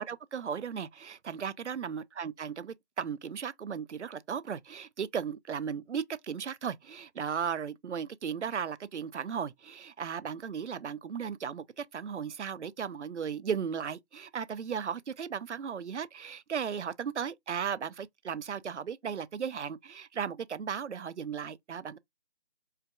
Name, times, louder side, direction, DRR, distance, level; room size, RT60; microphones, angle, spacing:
voice 1, 0.0-22.0, right 7 dB, 85° right, 0.5 m, -36 dB
4.4 x 2.3 x 2.3 m
figure-of-eight pair, 170°, 34 cm